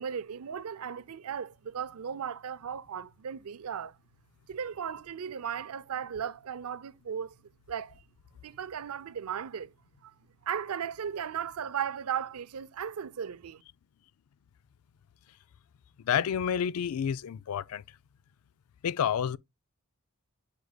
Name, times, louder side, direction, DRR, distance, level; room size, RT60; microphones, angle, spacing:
voice 1, 0.0-4.0 4.5-7.4 7.7-7.9 8.4-9.7 10.0-10.1 10.4-13.6, right 8 dB, 85° right, 0.5 m, -36 dB
voice 2, 16.0-17.8 18.8-19.4, left 8 dB, 85° left, 0.4 m, -29 dB
9.4 x 5.1 x 2.2 m
head